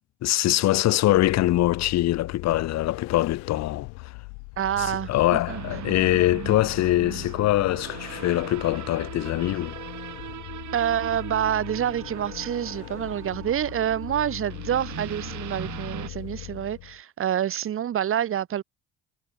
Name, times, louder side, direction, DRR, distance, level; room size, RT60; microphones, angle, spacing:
voice 1, 0.2-4.1 4.8-9.8, left 15 dB, 50° left, 0.4 m, -23 dB
Vehicle, 1.1-17.0, left 36 dB, 90° left, 0.8 m, -40 dB
voice 2, 4.6-5.6 10.7-18.6, right 10 dB, 35° right, 0.5 m, -27 dB
sound 1, 5.5-16.1, right 11 dB, 50° right, 0.9 m, -40 dB
supercardioid pair, 55°, 37 cm